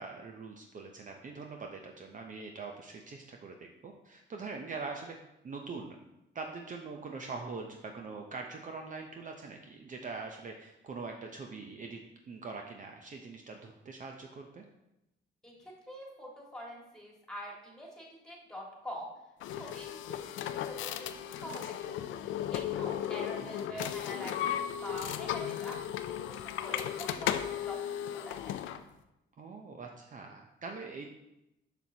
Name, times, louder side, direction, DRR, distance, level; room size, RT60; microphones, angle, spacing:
voice 1, 0.0-5.2 5.4-6.0 6.3-12.0 12.3-14.6 23.4-23.9 29.4-31.0, right 4 dB, 40° right, 2 dB, 0.6 m, -43 dB
voice 2, 15.4-19.1 19.5-28.5, equal, 5° left, -3 dB, 2.0 m, -45 dB
sound 1, 19.4-28.8, left 10 dB, 75° left, 0.4 m, -35 dB
6.8 x 6.1 x 2.8 m, 0.90 s
cardioid pair, 90°, 20 cm